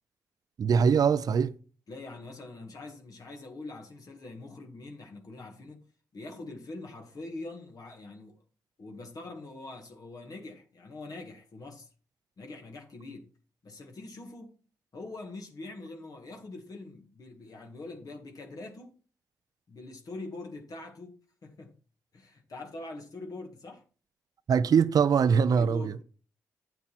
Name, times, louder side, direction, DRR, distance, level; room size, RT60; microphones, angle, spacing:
voice 1, 0.6-1.5 24.5-25.9, right 6 dB, 60° right, 0.6 m, -22 dB
voice 2, 1.9-5.8 6.1-8.4 8.8-11.9 12.4-13.3 13.6-14.6 14.9-18.9 19.7-21.7 22.1-23.8 25.5-26.0, left 2 dB, 55° left, 1.9 m, -43 dB
9.2 x 7.4 x 4.3 m
hypercardioid pair, 45°, 7 cm